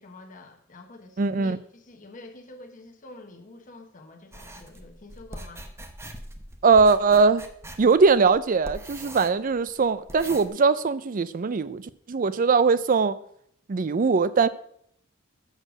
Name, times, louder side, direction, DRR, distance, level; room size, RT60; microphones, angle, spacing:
voice 1, 0.0-5.7, left 2 dB, 40° left, 1.1 m, -47 dB
voice 2, 1.2-1.6 6.6-7.4 7.8-11.8 12.1-13.2 13.7-14.5, right 4 dB, 45° right, 0.4 m, -21 dB
sound 1, 4.3-10.5, right 1 dB, 15° right, 0.8 m, -42 dB
6.6 x 6.5 x 6.3 m
head